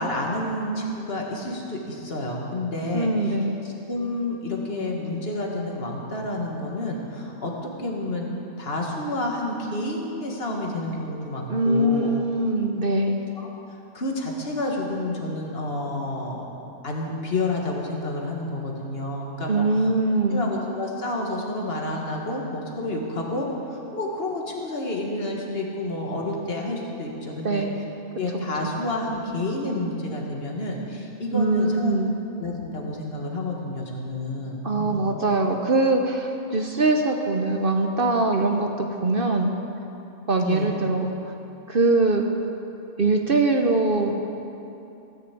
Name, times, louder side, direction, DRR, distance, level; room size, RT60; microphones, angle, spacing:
voice 1, 0.0-3.4 3.6-8.3 8.6-12.2 13.4-13.5 13.9-16.5 16.8-19.9 20.3-27.7 28.2-31.9 32.4-35.0 40.4-40.7, left 1 dB, 40° left, -1 dB, 2.0 m, -29 dB
voice 2, 2.9-3.6 11.5-13.2 19.5-20.5 27.4-27.8 28.3-28.7 31.3-32.2 34.6-39.5 40.3-41.3 41.7-42.3 43.0-44.2, right 2 dB, 45° right, 3 dB, 0.9 m, -22 dB
16.5 x 6.9 x 8.4 m, 2.8 s
omnidirectional pair, 1.5 m